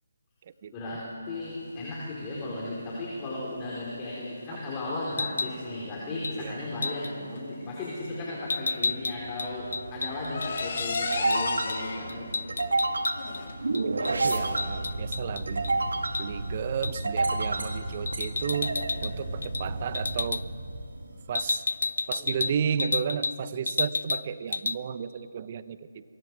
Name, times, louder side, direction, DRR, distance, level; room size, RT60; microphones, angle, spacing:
voice 1, 0.7-12.3 18.9-19.6 21.0-21.2 22.2-22.6, left 2 dB, 20° left, -5 dB, 4.3 m, -36 dB
sound 1, 1.4-20.1, left 4 dB, 45° left, 3.1 m, -40 dB
sound 2, 5.1-5.6 6.2-6.4 6.8-7.1 8.5-11.4 11.7-11.8 12.1-13.4 13.7-15.7 16.1-16.3 16.8-17.1 18.1-19.1 19.4-19.7 19.9-20.4 21.3-23.4 23.7-24.3 24.5-24.8, left 3 dB, 70° left, 0.6 m, -31 dB
sound 3, 8.7-21.4, right 2 dB, 75° right, 2.5 m, -31 dB
voice 2, 13.7-15.7 16.2-18.7 19.0-20.4 21.3-21.6 22.1-26.0, right 7 dB, 35° right, 14 dB, 0.9 m, -33 dB
28.0 x 23.0 x 4.9 m, 2.4 s
figure-of-eight pair, 155°, 0 cm